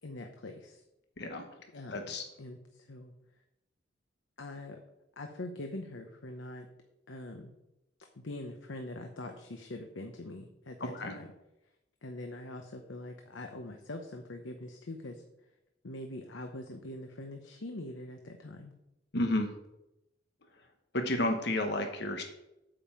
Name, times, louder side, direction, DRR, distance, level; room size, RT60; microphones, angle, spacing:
voice 1, 0.0-0.8 1.7-3.1 4.4-4.8 5.2-6.7 7.1-7.5 8.2-11.3 12.0-15.2 15.8-18.7, left 1 dB, 90° left, 4 dB, 0.9 m, -43 dB
voice 2, 1.9-2.2 10.8-11.1 19.1-19.5 20.9-22.2, left 1 dB, 60° left, 5 dB, 1.1 m, -31 dB
8.7 x 5.4 x 7.5 m, 0.90 s
head